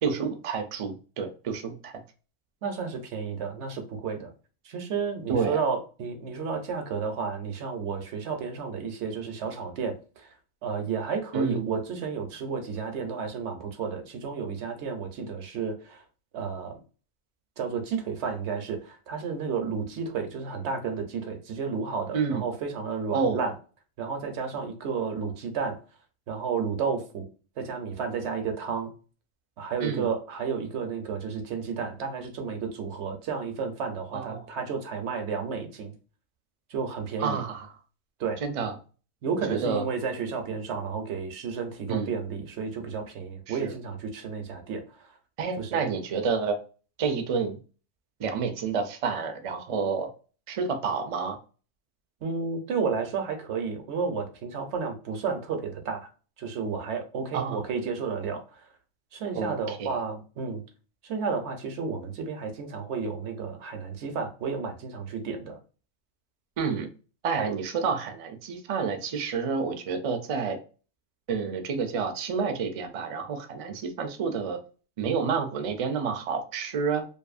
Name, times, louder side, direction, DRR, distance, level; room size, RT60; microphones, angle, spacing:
voice 1, 0.0-1.9 5.3-5.6 11.3-11.7 22.1-22.5 23.1-23.5 29.8-30.1 34.1-34.5 37.2-37.7 38.4-38.7 39.5-39.8 41.9-42.1 43.5-43.7 45.4-46.6 47.0-47.6 48.2-50.1 50.5-51.4 57.3-57.6 59.3-60.0 66.6-66.9 67.2-70.6 71.3-74.6 75.0-77.1, right 5 dB, 50° right, 0.4 m, -29 dB
voice 2, 2.6-4.3 4.6-10.3 10.6-16.0 16.3-16.8 17.6-23.5 24.0-25.8 26.3-27.3 27.6-28.9 29.6-35.9 36.7-37.4 38.2-38.4 39.2-45.2 45.6-45.7 52.2-56.1 56.4-58.7 59.1-60.6 61.0-65.6 67.4-67.5, right 5 dB, 85° right, 1.0 m, -32 dB
2.6 x 2.5 x 2.4 m
omnidirectional pair, 1.1 m